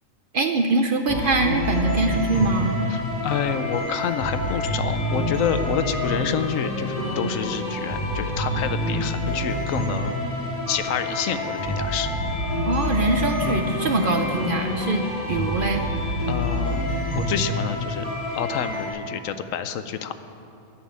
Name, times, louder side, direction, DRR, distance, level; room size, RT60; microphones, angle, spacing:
voice 1, 0.3-2.8 12.6-15.8, right 3 dB, 55° right, 5 dB, 0.7 m, -23 dB
sound 1, 1.1-18.9, left 1 dB, 35° left, 2.7 m, -27 dB
voice 2, 2.9-10.2 10.7-12.1 16.3-20.1, left 8 dB, 75° left, 10 dB, 1.0 m, -28 dB
10.0 x 7.4 x 8.6 m, 2.7 s
omnidirectional pair, 1.4 m